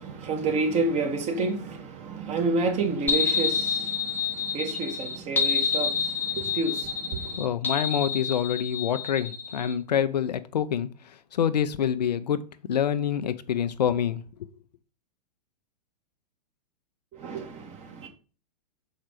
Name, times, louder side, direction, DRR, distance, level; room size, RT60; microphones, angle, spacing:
voice 1, 0.0-7.4 17.2-18.1, right 3 dB, 30° right, 2.0 m, -29 dB
sound 1, 3.1-9.7, left 6 dB, 10° left, 1.1 m, -28 dB
voice 2, 7.4-10.9 11.3-12.4 12.7-14.2, left 9 dB, 75° left, 0.7 m, -26 dB
6.4 x 4.9 x 4.7 m
hypercardioid pair, 105°, 21 cm